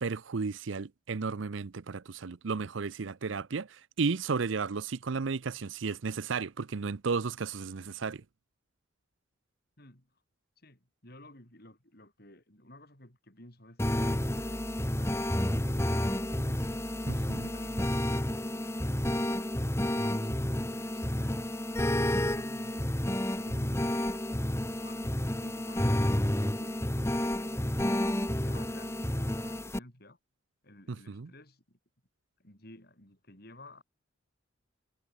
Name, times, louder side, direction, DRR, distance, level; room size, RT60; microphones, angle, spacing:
voice 1, 0.0-8.2 17.1-17.5 30.9-31.3, right 4 dB, 75° right, 0.6 m, -33 dB
voice 2, 9.8-10.1 10.6-16.8 17.4-18.7 19.2-22.8 23.3-23.9 24.7-26.8 27.2-30.2 30.6-31.8 32.4-33.8, left 1 dB, 50° left, 6.4 m, -54 dB
sound 1, 13.8-29.8, left 1 dB, 15° left, 1.3 m, -30 dB
head